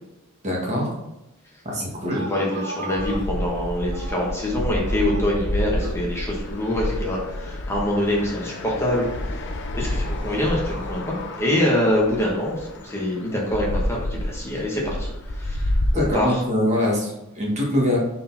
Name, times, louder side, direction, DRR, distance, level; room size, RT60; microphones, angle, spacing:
voice 1, 0.4-0.9 1.7-2.2 15.9-18.0, left 1 dB, 35° right, -3 dB, 1.7 m, -23 dB
sound 1, 1.9-4.5 4.9-6.1 6.7-7.7, right 2 dB, 55° right, 1.1 m, -38 dB
voice 2, 2.0-9.4 9.7-15.7 15.9-16.4, left 1 dB, 10° left, -4 dB, 1.3 m, -25 dB
sound 2, 3.0-16.1, left 1 dB, 55° left, 0.7 m, -29 dB
6.5 x 4.3 x 4.1 m, 0.95 s
head